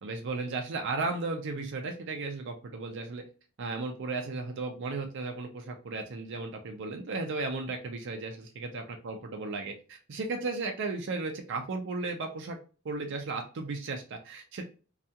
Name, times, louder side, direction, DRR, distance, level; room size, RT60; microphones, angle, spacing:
voice 1, 0.0-3.2 3.6-12.6 12.8-14.6, right 3 dB, 60° right, 4 dB, 0.5 m, -35 dB
2.7 x 2.3 x 2.2 m, 0.35 s
head